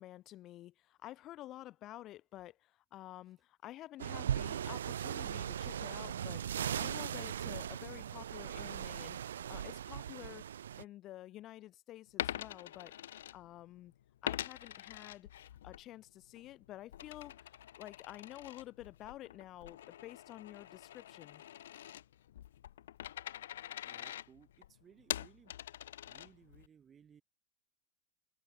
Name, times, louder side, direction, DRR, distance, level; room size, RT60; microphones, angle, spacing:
voice 1, 0.0-10.4 10.8-12.9 13.3-13.9 14.2-15.3 15.6-17.5 17.8-21.4, left 14 dB, 35° left, 5.3 m, -50 dB
sound 1, 4.0-10.8, right 9 dB, 65° right, 2.1 m, -39 dB
Coin (dropping), 12.1-13.8 14.2-15.8 16.2-26.7, left 12 dB, 60° left, 0.4 m, -44 dB
voice 2, 23.8-25.5 26.1-27.2, right 7 dB, 20° right, 5.9 m, -62 dB
figure-of-eight pair, 90°, 0 cm